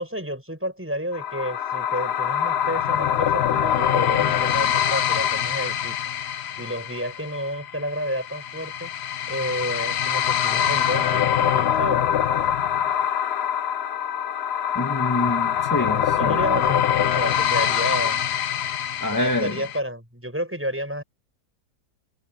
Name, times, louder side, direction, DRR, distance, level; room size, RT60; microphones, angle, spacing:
voice 1, 0.0-6.0 6.6-8.9 9.3-12.0 16.2-18.3 19.1-21.0, equal, 5° right, 6.3 m, -30 dB
sound 1, 1.1-19.8, left 9 dB, 70° left, 0.6 m, -24 dB
voice 2, 14.7-16.4 19.0-19.6, left 1 dB, 10° left, 1.9 m, -26 dB
omnidirectional pair, 1.9 m